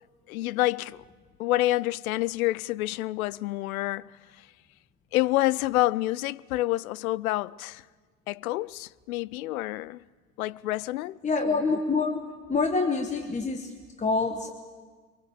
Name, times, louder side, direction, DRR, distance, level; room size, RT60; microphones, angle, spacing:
voice 1, 0.3-1.0 1.4-4.5 5.1-7.8 8.3-10.0 10.4-11.2, left 17 dB, 60° left, 0.7 m, -28 dB
voice 2, 11.2-12.2 12.5-14.5, left 4 dB, 15° left, 1.4 m, -26 dB
24.0 x 23.5 x 7.3 m
hypercardioid pair, 95°, 48 cm